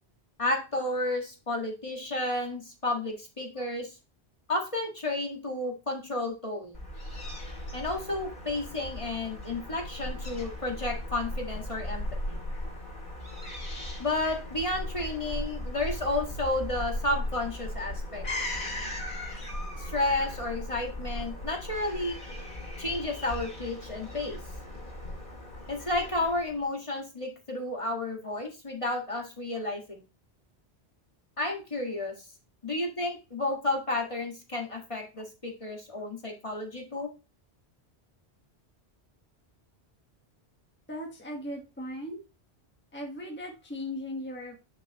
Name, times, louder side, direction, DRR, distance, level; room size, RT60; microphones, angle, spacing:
voice 1, 0.4-4.0 4.5-6.9 7.7-12.4 14.0-18.2 19.8-22.2 22.8-24.4 25.7-30.0 31.4-32.1 32.6-37.1, left 2 dB, 30° left, 1 dB, 1.7 m, -32 dB
Fowl / Gull seagull, 6.7-26.6, left 1 dB, 50° left, 2.7 m, -37 dB
voice 2, 40.9-42.2 42.9-44.6, left 1 dB, 10° left, 0 dB, 1.2 m, -37 dB
8.7 x 5.9 x 2.9 m, 0.30 s
omnidirectional pair, 1.1 m